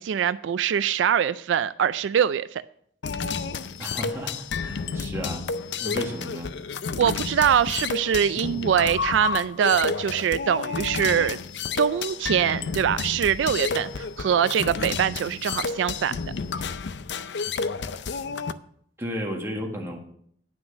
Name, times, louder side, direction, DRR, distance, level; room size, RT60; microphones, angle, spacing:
voice 1, 0.0-2.6 7.0-11.4 11.8-16.1, right 8 dB, 80° right, 15 dB, 0.3 m, -23 dB
sound 1, 3.0-18.5, left 5 dB, 70° left, 0.5 m, -31 dB
voice 2, 3.8-5.4 5.8-6.5 19.0-20.0, equal, 15° right, 0 dB, 1.6 m, -33 dB
9.9 x 6.1 x 6.2 m, 0.65 s
head